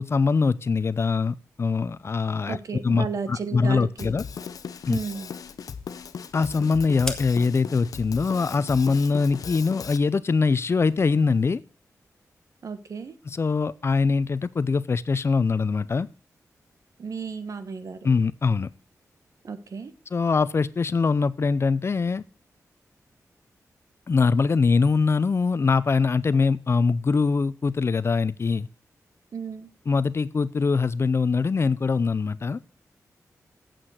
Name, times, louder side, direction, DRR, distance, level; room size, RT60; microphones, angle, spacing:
voice 1, 0.0-2.6 2.8-4.2 4.9-5.0 6.3-11.6 13.3-16.1 18.0-18.7 20.1-22.2 24.1-28.7 29.9-32.6, left 4 dB, 45° left, 17 dB, 0.5 m, -23 dB
voice 2, 2.5-4.1 4.9-5.3 12.6-13.1 17.0-18.0 19.4-19.9 29.3-29.7, right 5 dB, 65° right, 10 dB, 1.3 m, -33 dB
Drum kit, 4.0-10.0, left 6 dB, 80° left, 0.7 m, -38 dB
sound 1, 4.8-11.6, left 1 dB, 10° left, 1.6 m, -44 dB
8.6 x 7.6 x 6.5 m, 0.38 s
cardioid pair, 80°, 6 cm